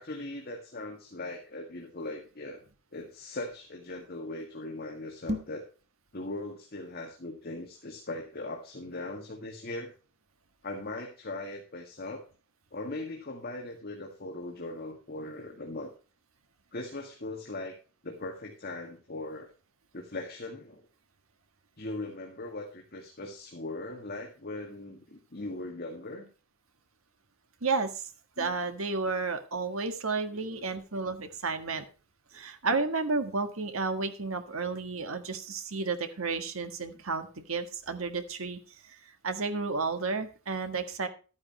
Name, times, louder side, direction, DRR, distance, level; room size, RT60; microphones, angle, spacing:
voice 1, 0.0-2.6 2.9-5.6 6.1-9.9 10.6-12.2 12.7-15.9 16.7-17.8 18.0-19.5 19.9-20.8 21.8-26.3 28.4-28.6 30.3-30.6 32.3-32.4, left 2 dB, 50° left, 1 dB, 1.9 m, -39 dB
sound 1, 5.2-5.7, left 1 dB, 30° right, 1.4 m, -34 dB
voice 2, 27.6-28.1 28.4-31.8 32.3-38.6 38.9-39.0 39.2-41.1, right 4 dB, 80° right, 8 dB, 1.6 m, -32 dB
12.5 x 9.7 x 3.0 m, 0.34 s
head